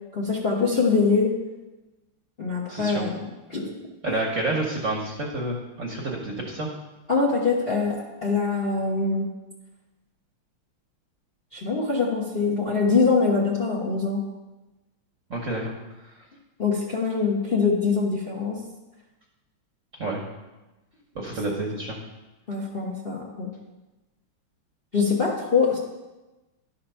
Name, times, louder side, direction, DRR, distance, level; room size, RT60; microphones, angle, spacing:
voice 1, 0.1-1.3 2.4-3.7 7.1-9.3 11.5-14.2 16.6-18.6 22.5-23.5 24.9-25.8, left 4 dB, 40° left, -3 dB, 0.9 m, -23 dB
voice 2, 2.7-3.1 4.0-6.7 15.3-15.7 20.0-20.2 21.1-22.0, right 2 dB, 50° right, -1 dB, 1.0 m, -29 dB
11.5 x 4.3 x 5.5 m, 1.1 s
omnidirectional pair, 2.4 m